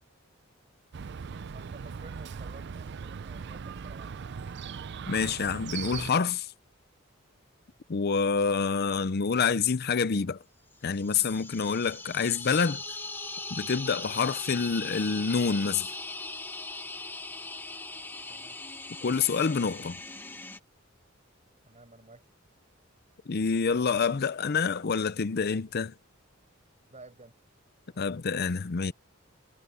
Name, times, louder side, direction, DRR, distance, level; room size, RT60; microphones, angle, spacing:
Chirp tweet, 0.9-6.1, right 6 dB, 60° right, 0.5 m, -39 dB
voice 1, 1.3-4.1 18.3-18.6 21.7-22.2 26.9-27.3, right 3 dB, 35° right, 5.2 m, -52 dB
voice 2, 5.1-6.5 7.9-10.4 10.8-12.8 13.5-15.9 19.0-20.0 23.3-25.9 28.0-28.9, left 5 dB, 50° left, 0.6 m, -27 dB
sound 1, 10.9-20.6, left 3 dB, 10° left, 1.7 m, -39 dB
head